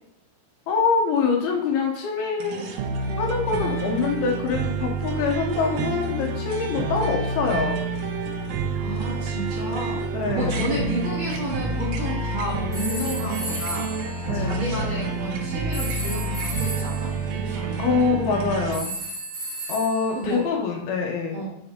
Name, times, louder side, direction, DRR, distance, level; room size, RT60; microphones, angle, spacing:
voice 1, 0.7-2.6 3.2-7.8 10.1-10.7 14.3-14.6 17.8-18.9 19.7-21.5, left 5 dB, 75° left, 1 dB, 2.8 m, -25 dB
sound 1, 2.4-18.8, right 3 dB, 75° right, 2.5 m, -28 dB
voice 2, 8.7-10.1 10.3-13.9 14.3-17.8 20.1-20.4 21.3-21.5, equal, 40° right, -7 dB, 3.4 m, -31 dB
sound 2, 12.7-15.0 15.7-17.1 18.7-20.4, right 2 dB, 25° right, 2.8 m, -34 dB
7.5 x 7.1 x 3.6 m, 0.77 s
omnidirectional pair, 4.7 m